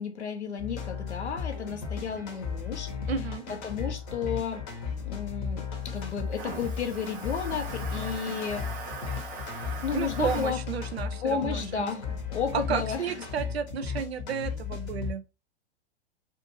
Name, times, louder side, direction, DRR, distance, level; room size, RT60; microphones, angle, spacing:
voice 1, 0.0-2.9 3.5-4.6 5.0-5.6 5.9-8.7 9.8-10.6 11.2-12.0 12.3-13.1, left 6 dB, 85° left, 0.7 m, -32 dB
sound 1, 0.6-15.1, left 6 dB, 35° left, 0.8 m, -35 dB
Toilet flush, 1.1-13.4, right 5 dB, 25° right, 0.7 m, -44 dB
voice 2, 3.1-3.5 9.9-12.2 12.5-15.2, right 7 dB, 70° right, 0.5 m, -32 dB
2.5 x 2.3 x 2.8 m
figure-of-eight pair, 105°, 33 cm